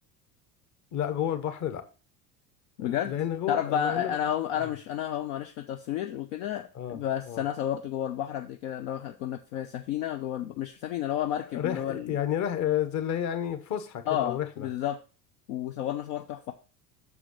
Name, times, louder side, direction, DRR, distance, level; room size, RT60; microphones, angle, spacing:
voice 1, 0.9-1.8 2.8-4.2 4.6-4.7 6.7-7.0 7.2-7.4 11.5-14.7, left 10 dB, 35° left, 1.3 m, -31 dB
voice 2, 2.8-3.1 3.5-12.1 14.1-15.0 15.5-16.5, left 10 dB, 55° left, 0.8 m, -31 dB
6.6 x 5.0 x 6.4 m
figure-of-eight pair, 75°, 49 cm